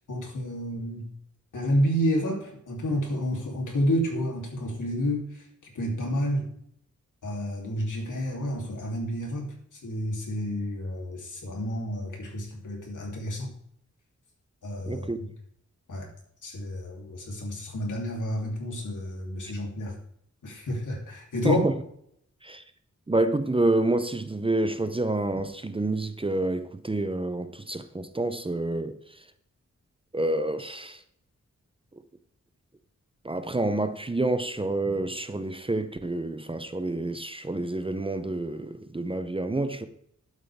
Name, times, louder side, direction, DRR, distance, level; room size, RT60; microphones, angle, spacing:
voice 1, 0.1-1.1 1.5-5.3 5.7-6.4 7.2-9.5 9.8-13.5 14.6-15.1 15.9-16.1 16.4-19.9 20.4-21.7, equal, 85° left, 3.3 m, -29 dB
voice 2, 14.9-15.2 21.4-21.7 22.4-22.6 23.1-29.0 30.1-31.0 33.2-39.9, right 2 dB, 20° right, 0.6 m, -28 dB
11.5 x 8.2 x 3.6 m
wide cardioid pair, 125°, 30 cm